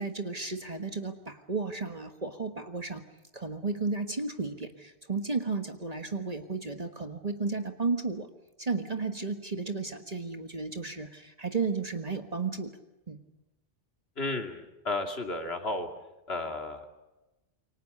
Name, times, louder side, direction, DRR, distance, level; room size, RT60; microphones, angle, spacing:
voice 1, 0.0-3.0 3.3-8.3 8.6-12.7 13.1-13.2, right 4 dB, 40° right, 6 dB, 1.6 m, -33 dB
voice 2, 14.2-15.9 16.3-16.9, left 2 dB, 80° left, 5 dB, 2.7 m, -33 dB
27.5 x 24.5 x 6.7 m, 1.0 s
omnidirectional pair, 1.0 m